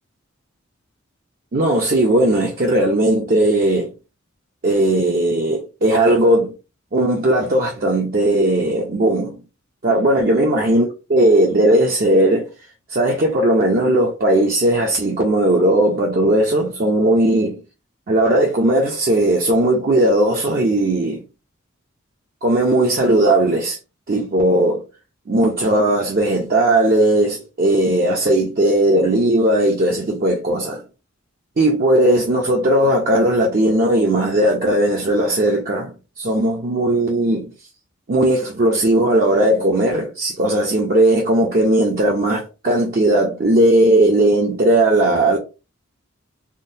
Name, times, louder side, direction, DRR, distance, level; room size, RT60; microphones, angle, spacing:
voice 1, 1.5-3.9 4.6-6.5 6.9-9.4 9.8-12.5 12.9-17.6 18.1-21.2 22.4-23.8 24.1-24.8 25.3-30.8 31.6-37.5 38.1-45.4, right 1 dB, 45° right, 0.5 m, -17 dB
3.6 x 2.2 x 2.6 m
head